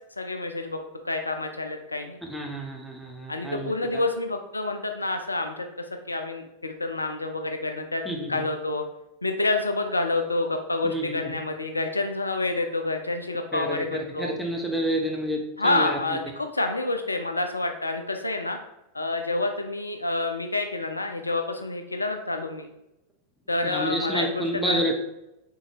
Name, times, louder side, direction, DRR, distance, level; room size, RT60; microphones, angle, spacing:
voice 1, 0.2-2.2 3.3-8.0 8.3-8.8 9.2-14.3 15.6-18.6 18.9-22.7 23.5-24.9, left 2 dB, 80° left, 5 dB, 0.4 m, -28 dB
voice 2, 2.3-4.0 8.0-8.4 10.8-11.3 13.5-16.2 23.6-24.9, equal, ahead, 0 dB, 0.8 m, -29 dB
3.7 x 3.7 x 3.0 m, 0.88 s
figure-of-eight pair, 90°, 0 cm